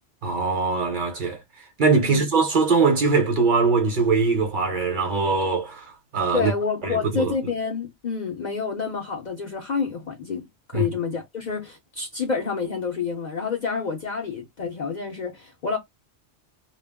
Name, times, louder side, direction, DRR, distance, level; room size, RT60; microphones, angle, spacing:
voice 1, 0.2-6.5 6.8-7.3 10.7-10.9, right 4 dB, 50° right, 0.8 m, -22 dB
voice 2, 6.3-15.8, left 5 dB, 55° left, 0.5 m, -28 dB
2.2 x 2.1 x 3.3 m
omnidirectional pair, 1.2 m